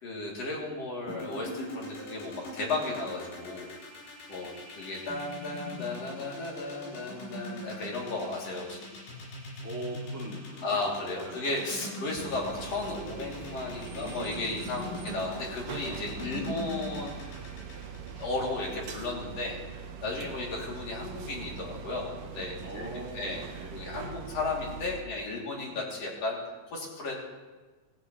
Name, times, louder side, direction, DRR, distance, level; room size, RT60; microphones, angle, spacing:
voice 1, 0.0-3.7 4.3-8.9 10.6-17.4 18.2-22.9 23.1-23.4 23.7-26.4 26.7-27.1, left 2 dB, 40° left, -3 dB, 3.3 m, -34 dB
sound 1, 1.1-19.2, equal, 65° left, 6.0 m, -42 dB
voice 2, 9.5-10.9 11.2-11.4 11.8-11.9 13.9-15.1 16.1-16.3 20.2-20.4 22.6-23.8 25.6-25.9, right 1 dB, 15° right, -4 dB, 0.6 m, -43 dB
sound 2, 12.1-25.0, right 7 dB, 85° right, 1.9 m, -42 dB
20.0 x 14.0 x 3.1 m, 1.3 s
omnidirectional pair, 5.3 m